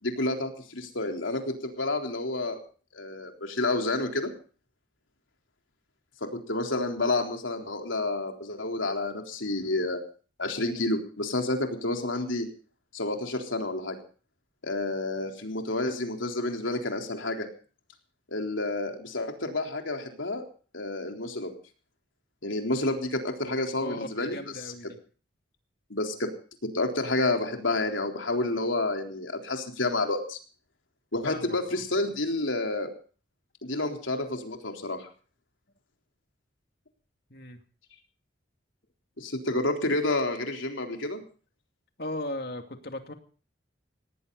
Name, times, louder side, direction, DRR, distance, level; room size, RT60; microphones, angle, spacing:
voice 1, 0.0-2.6 2.9-4.3 6.2-10.0 10.4-12.5 12.9-14.0 14.6-17.5 18.3-20.4 20.7-21.5 22.4-24.6 25.9-26.3 26.7-30.4 31.1-32.9 33.6-35.1 39.2-41.2, left 2 dB, 85° left, 3 dB, 3.8 m, -29 dB
voice 2, 23.8-25.0 31.3-31.6 37.3-37.6 42.0-43.1, left 1 dB, 55° left, 6 dB, 2.6 m, -37 dB
18.5 x 18.5 x 4.0 m, 0.40 s
head